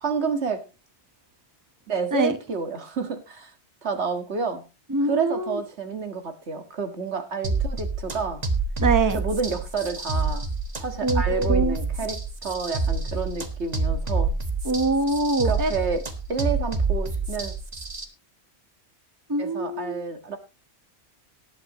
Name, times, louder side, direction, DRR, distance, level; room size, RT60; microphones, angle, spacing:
voice 1, 0.0-0.6 1.9-3.5 3.8-4.6 5.0-8.5 9.1-10.5 10.8-14.3 15.4-16.0 16.3-17.5 19.4-20.4, right 5 dB, 85° right, 7 dB, 1.9 m, -29 dB
voice 2, 4.9-5.6 8.8-9.2 11.0-11.8 14.6-15.7 19.3-20.0, right 2 dB, 20° right, 10 dB, 1.0 m, -24 dB
sound 1, 7.4-18.1, right 3 dB, 40° right, 1.4 m, -27 dB
18.5 x 8.6 x 3.0 m, 0.29 s
omnidirectional pair, 1.1 m